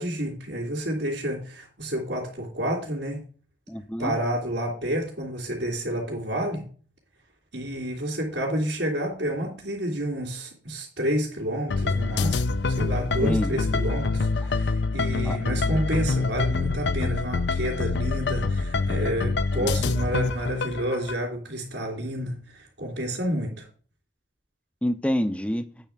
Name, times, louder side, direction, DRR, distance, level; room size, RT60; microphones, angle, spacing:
voice 1, 0.0-3.2 4.0-6.7 7.5-23.6, equal, 70° right, 3.0 m, -30 dB
voice 2, 3.7-4.2 13.2-13.8 15.2-15.4 19.6-19.7 24.8-25.7, equal, 5° left, 0.5 m, -27 dB
sound 1, 11.7-21.1, left 3 dB, 70° left, 0.5 m, -26 dB
9.1 x 4.2 x 7.3 m
head